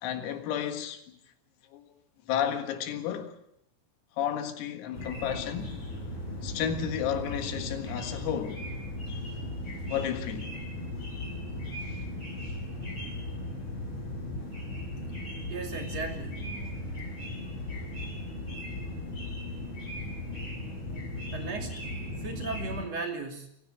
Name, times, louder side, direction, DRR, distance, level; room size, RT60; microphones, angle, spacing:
voice 1, 0.0-1.0 1.7-1.9 2.3-3.4 4.2-5.7 6.4-8.6 9.9-10.5 11.9-12.0, left 9 dB, 80° left, 4.4 m, -32 dB
sound 1, 4.9-22.8, left 1 dB, 25° left, 8.8 m, -37 dB
voice 2, 15.5-16.4 16.9-17.1 21.3-21.8 22.2-23.5, right 4 dB, 40° right, 2.9 m, -36 dB
26.0 x 15.5 x 7.9 m
omnidirectional pair, 6.0 m